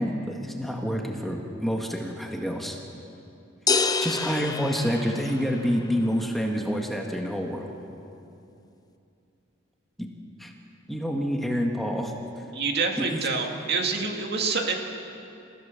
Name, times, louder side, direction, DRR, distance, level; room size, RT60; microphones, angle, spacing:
voice 1, 0.0-2.8 4.0-7.7 10.0-10.1 10.4-10.5 10.9-12.1 13.0-13.2, equal, ahead, 1 dB, 1.6 m, -28 dB
sound 1, 3.7-5.7, left 4 dB, 20° left, 0.7 m, -27 dB
voice 2, 12.5-14.7, right 4 dB, 55° right, 2 dB, 2.3 m, -27 dB
29.0 x 15.5 x 7.1 m, 2.7 s
head